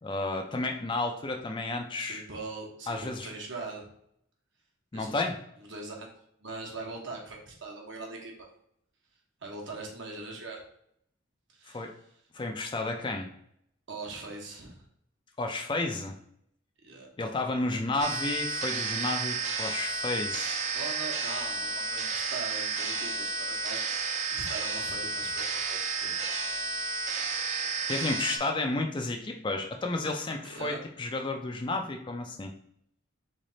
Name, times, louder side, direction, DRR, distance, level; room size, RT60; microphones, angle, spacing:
voice 1, 0.0-2.2 2.9-3.3 4.9-5.4 11.7-11.9 12.3-13.3 15.4-16.2 17.2-20.6 27.9-32.5, left 2 dB, 25° left, 4 dB, 0.4 m, -32 dB
voice 2, 2.0-3.9 4.9-5.1 5.7-6.1 6.4-8.5 9.4-10.6 11.5-11.9 13.9-14.8 16.8-17.1 20.7-23.8 24.3-26.1 30.4-30.8, right 3 dB, 65° right, 0 dB, 1.1 m, -41 dB
sound 1, 18.0-28.4, right 4 dB, 35° right, 0.5 m, -32 dB
3.3 x 3.2 x 3.8 m, 0.71 s
head